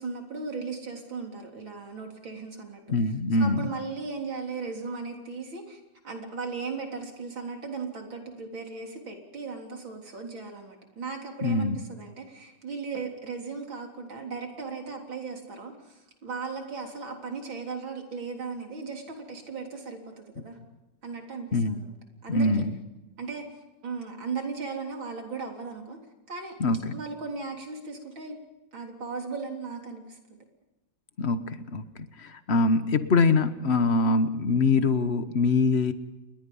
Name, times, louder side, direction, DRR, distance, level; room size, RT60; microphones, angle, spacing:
voice 1, 0.0-2.8 3.4-20.6 21.0-22.0 22.2-22.6 23.2-23.5 23.8-26.0 26.3-26.5 26.9-28.4 28.7-30.4, right 4 dB, 65° right, 2 dB, 4.4 m, -37 dB
voice 2, 2.9-3.6 11.4-11.8 21.5-21.8 22.3-22.7 26.6-27.0 31.2-31.9 32.2-35.9, left 3 dB, 40° left, 11 dB, 1.1 m, -24 dB
29.5 x 21.5 x 5.6 m, 1.0 s
omnidirectional pair, 2.4 m